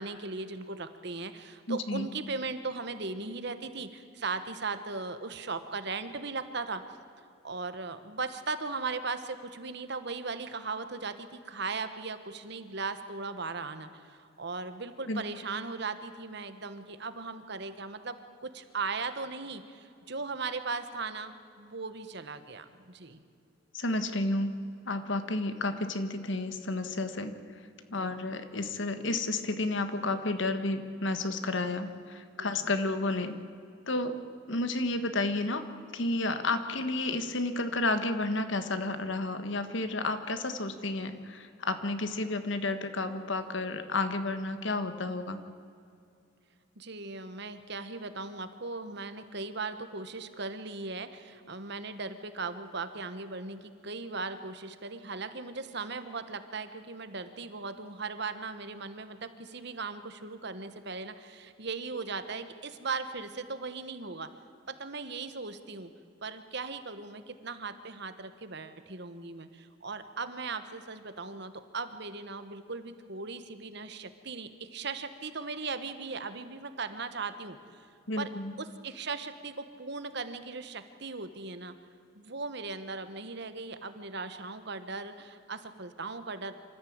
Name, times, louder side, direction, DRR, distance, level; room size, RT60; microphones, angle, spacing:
voice 1, 0.0-6.8 7.4-23.2 28.0-28.2 32.4-32.5 46.8-64.3 64.7-65.9 66.2-77.6 78.2-78.3 78.6-81.7 82.1-86.5, right 4 dB, 55° right, 10 dB, 1.3 m, -38 dB
voice 2, 1.7-2.1 15.1-15.2 23.7-27.4 27.9-33.4 33.9-34.2 34.5-35.7 35.9-45.4 78.1-78.5, left 2 dB, 60° left, 9 dB, 1.4 m, -31 dB
26.0 x 14.0 x 8.8 m, 2.5 s
head